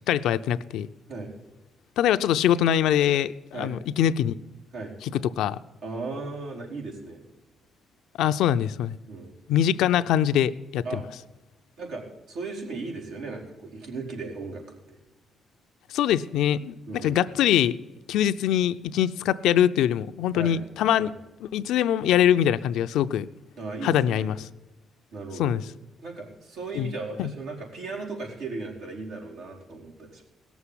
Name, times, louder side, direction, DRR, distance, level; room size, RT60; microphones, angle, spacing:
voice 1, 0.1-0.9 2.0-4.4 5.4-5.6 8.2-9.0 9.5-10.8 15.9-16.8 17.0-17.8 18.1-21.1 21.4-23.3 23.8-24.4 25.4-25.6 26.7-26.9 27.2-27.3, left 10 dB, 85° left, 13 dB, 0.5 m, -23 dB
voice 2, 5.8-7.2 9.1-9.3 10.8-11.0 11.8-15.0 16.9-17.2 20.3-20.6 21.0-21.1 23.6-24.3 25.1-25.6 26.0-30.2, right 3 dB, 90° right, -2 dB, 4.4 m, -36 dB
17.5 x 7.2 x 9.9 m, 1.0 s
cardioid pair, 90°, 0 cm